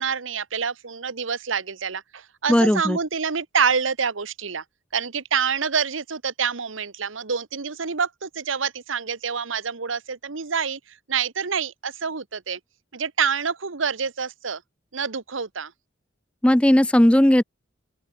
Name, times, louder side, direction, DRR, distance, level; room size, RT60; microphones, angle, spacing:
voice 1, 0.0-4.6 4.9-12.6 12.9-14.6 14.9-15.7, right 6 dB, 85° right, 1.2 m, -27 dB
voice 2, 2.5-3.0 16.4-17.4, left 1 dB, 5° left, 0.4 m, -16 dB
open air
head